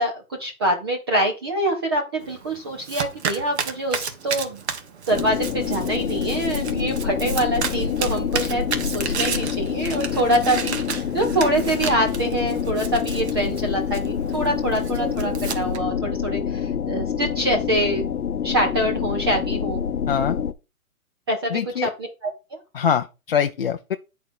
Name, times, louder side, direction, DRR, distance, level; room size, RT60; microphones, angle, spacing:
voice 1, 0.0-4.6 5.1-18.0 18.4-19.8 21.3-22.6, right 1 dB, 15° right, 0.7 m, -25 dB
Domestic sounds home sounds, 2.2-15.8, right 6 dB, 50° right, 1.7 m, -33 dB
sound 1, 5.1-20.5, left 7 dB, 85° left, 0.9 m, -27 dB
voice 2, 20.1-20.4 21.5-21.9 22.7-24.0, left 7 dB, 45° left, 0.5 m, -23 dB
10.0 x 4.6 x 5.3 m
hypercardioid pair, 160°, 43 cm